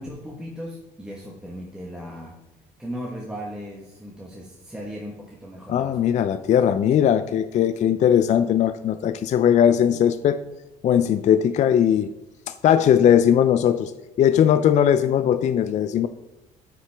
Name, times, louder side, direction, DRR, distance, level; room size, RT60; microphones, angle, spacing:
voice 1, 0.0-2.4 2.8-5.9, equal, 5° right, -3 dB, 1.2 m, -37 dB
voice 2, 5.7-10.4 10.8-12.1 12.5-13.9 14.2-16.1, left 9 dB, 45° left, 12 dB, 0.4 m, -19 dB
9.2 x 6.0 x 3.4 m, 1.0 s
cardioid pair, 110°, 17 cm